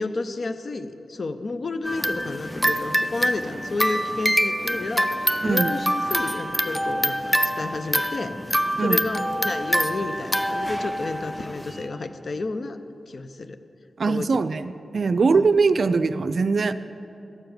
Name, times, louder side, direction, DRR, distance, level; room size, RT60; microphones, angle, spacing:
voice 1, 0.0-8.3 8.8-12.8 13.1-13.6 14.1-14.4 15.3-15.5, left 3 dB, 60° left, 10 dB, 0.5 m, -31 dB
sound 1, 1.8-11.8, equal, 5° left, 0.5 m, -25 dB
voice 2, 5.4-5.7 8.8-9.0 14.0-16.7, right 4 dB, 65° right, 12 dB, 0.4 m, -21 dB
12.0 x 4.8 x 7.7 m, 2.8 s
cardioid pair, 45°, 0 cm